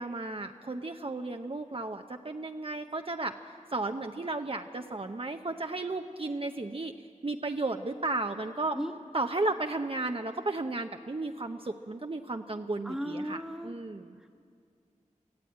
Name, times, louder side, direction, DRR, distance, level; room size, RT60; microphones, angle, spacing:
voice 1, 0.0-3.3 3.7-6.9 7.2-8.8 9.1-14.2, right 2 dB, 45° right, 5 dB, 0.8 m, -34 dB
voice 2, 12.8-13.7, equal, 5° right, 5 dB, 1.4 m, -35 dB
23.5 x 14.5 x 8.7 m, 2.2 s
wide cardioid pair, 50°, 13 cm